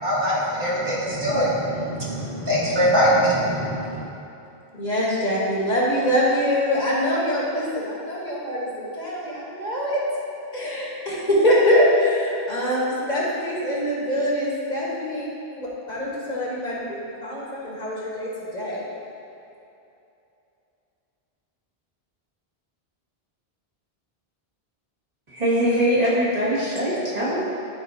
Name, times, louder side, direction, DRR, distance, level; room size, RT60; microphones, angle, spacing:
voice 1, 0.0-4.0, equal, 60° right, -7 dB, 1.7 m, -22 dB
voice 2, 4.8-10.0 10.5-18.8, equal, 45° left, -6 dB, 1.5 m, -24 dB
voice 3, 25.3-27.4, equal, 40° right, -9 dB, 1.9 m, -22 dB
12.0 x 4.3 x 2.8 m, 2.7 s
omnidirectional pair, 1.0 m